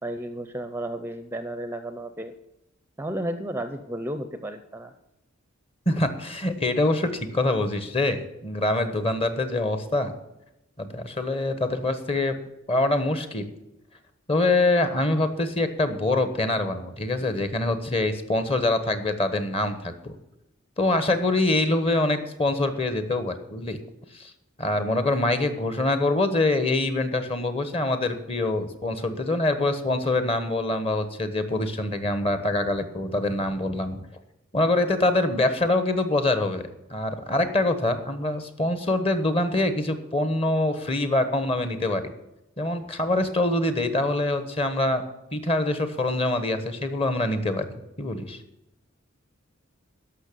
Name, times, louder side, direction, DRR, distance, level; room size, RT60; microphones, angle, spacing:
voice 1, 0.0-2.3 3.0-4.9, right 1 dB, 10° right, 9 dB, 0.6 m, -33 dB
voice 2, 5.9-10.1 10.8-12.4 12.7-13.5 14.3-20.1 20.8-23.8 24.1-24.3 24.6-34.0 34.5-42.1 42.6-45.0 45.3-47.7 48.0-48.4, left 2 dB, 30° left, 9 dB, 1.2 m, -25 dB
13.0 x 5.8 x 8.5 m, 0.88 s
head